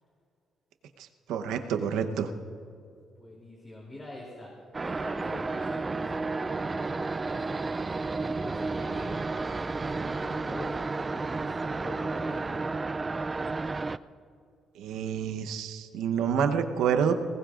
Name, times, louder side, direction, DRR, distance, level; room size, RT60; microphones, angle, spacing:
voice 1, 1.3-2.3 14.8-17.1, right 7 dB, 90° right, 7 dB, 0.9 m, -28 dB
voice 2, 3.2-4.5 4.8-7.6 8.2-9.2 9.6-10.8 11.1-12.6, left 1 dB, 25° left, -3 dB, 3.1 m, -43 dB
sound 1, 4.7-14.0, right 3 dB, 25° right, 0.4 m, -32 dB
19.5 x 18.5 x 2.5 m, 2.4 s
cardioid pair, 90°, 0 cm